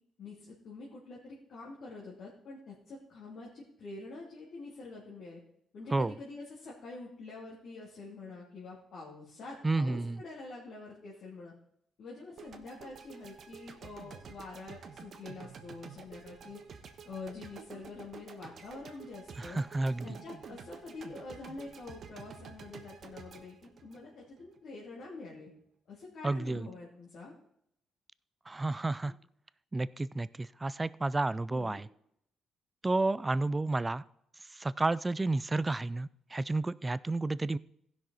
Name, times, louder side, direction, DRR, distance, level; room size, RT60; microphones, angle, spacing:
voice 1, 0.2-5.4 5.7-11.5 12.0-16.6 17.1-19.6 20.0-25.5 25.9-27.4 29.0-29.1 31.5-31.8, left 3 dB, 65° left, -6 dB, 2.6 m, -46 dB
voice 2, 9.6-10.2 19.4-20.2 26.2-26.7 28.5-29.1 29.7-31.9 32.8-34.0 34.5-37.6, right 2 dB, 20° right, 18 dB, 0.4 m, -31 dB
sound 1, 12.4-24.6, right 6 dB, 55° right, 1.2 m, -50 dB
15.5 x 6.2 x 4.1 m, 0.74 s
cardioid pair, 90°, 0 cm